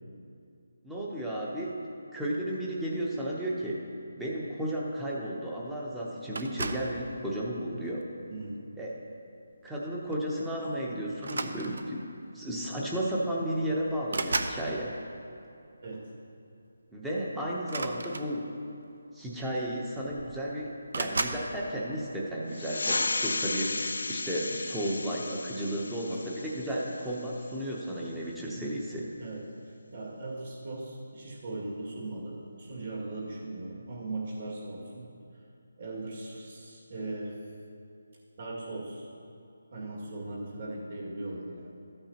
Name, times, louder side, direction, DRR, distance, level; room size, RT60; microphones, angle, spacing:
voice 1, 0.8-1.7 2.1-3.8 4.2-8.1 8.8-8.9 9.6-12.1 12.3-14.9 16.9-18.4 19.1-20.7 20.9-29.0, right 1 dB, 5° right, -5 dB, 0.8 m, -33 dB
sound 1, 6.3-7.0 7.8-8.2 9.7-9.8 10.1-10.3 11.2-12.0 13.1-13.2 13.5-14.6 17.6-18.7 19.6-19.7 19.9-20.4 20.9-21.5, right 3 dB, 65° right, 0.6 m, -34 dB
voice 2, 8.3-8.6 15.8-16.1 25.7-25.8 28.5-28.8 29.2-35.1 35.8-37.4 38.4-39.1 39.7-41.8, right 2 dB, 40° right, -4 dB, 2.1 m, -39 dB
sound 2, 22.5-27.6, left 3 dB, 80° left, 0.3 m, -34 dB
13.5 x 8.8 x 2.9 m, 2.6 s
hypercardioid pair, 170°, 0 cm